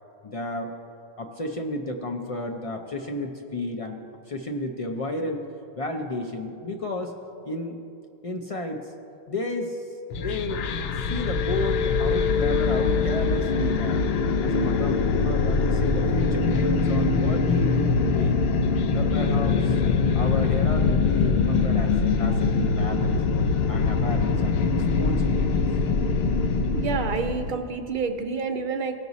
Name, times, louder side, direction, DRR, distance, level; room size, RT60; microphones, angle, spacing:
voice 1, 0.2-0.7 1.2-4.0 4.3-5.4 5.8-7.1 7.4-7.8 8.2-8.9 9.3-9.9 10.2-10.6 11.1-14.0 14.4-18.4 18.9-19.8 20.1-23.2 23.7-25.7, left 2 dB, 40° left, 2 dB, 0.6 m, -32 dB
sound 1, 10.1-27.5, left 4 dB, 75° left, 0.8 m, -23 dB
voice 2, 26.7-28.9, right 5 dB, 60° right, 7 dB, 0.6 m, -28 dB
16.5 x 6.0 x 4.0 m, 2.6 s
omnidirectional pair, 1.0 m